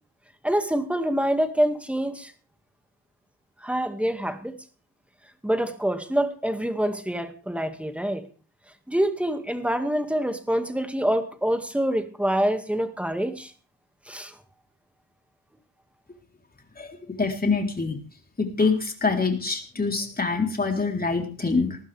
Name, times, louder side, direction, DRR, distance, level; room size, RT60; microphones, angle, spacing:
voice 1, 0.4-2.3 3.6-4.5 5.4-8.2 8.9-13.5 14.1-14.3, equal, 5° right, 7 dB, 2.1 m, -26 dB
voice 2, 17.2-18.0 18.4-21.8, left 4 dB, 25° left, 2 dB, 3.9 m, -25 dB
20.0 x 14.0 x 3.5 m, 0.37 s
cardioid pair, 95°, 38 cm